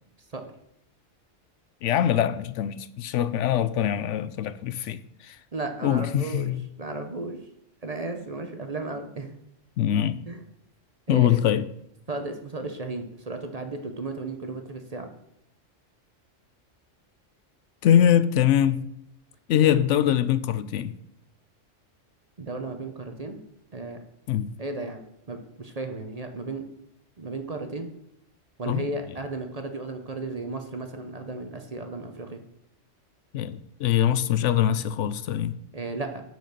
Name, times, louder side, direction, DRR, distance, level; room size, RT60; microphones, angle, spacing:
voice 1, 1.8-5.4 5.8-6.6 9.8-10.2 11.1-11.7 17.8-18.8 19.5-21.0 24.3-24.5 28.7-28.8 33.3-35.6, left 10 dB, 75° left, 14 dB, 0.9 m, -23 dB
voice 2, 5.5-6.5 6.8-7.4 7.8-9.3 10.3-10.4 11.1-11.4 12.1-15.1 19.7-19.8 22.4-23.4 23.7-24.0 24.6-26.6 27.2-27.9 28.6-32.4 35.7-36.2, right 2 dB, 35° right, 6 dB, 0.9 m, -34 dB
8.0 x 6.3 x 6.7 m, 0.78 s
omnidirectional pair, 1.3 m